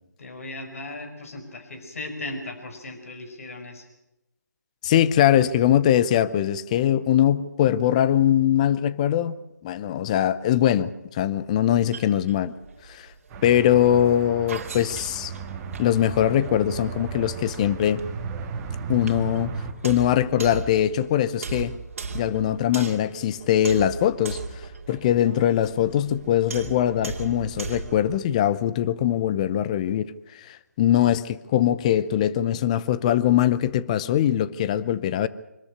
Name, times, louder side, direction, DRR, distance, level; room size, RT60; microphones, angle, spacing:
voice 1, 0.2-3.9, left 2 dB, 50° left, 5.0 m, -37 dB
voice 2, 4.8-9.4 9.6-12.5 12.9-13.1 13.4-15.3 15.8-18.0 18.9-19.5 19.8-21.8 22.1-35.3, left 11 dB, 25° left, 0.7 m, -22 dB
sound 1, 11.6-28.2, right 4 dB, 50° right, 2.5 m, -38 dB
sound 2, 13.3-19.7, right 5 dB, 15° right, 1.8 m, -35 dB
25.0 x 13.5 x 9.8 m
figure-of-eight pair, 155°, 10 cm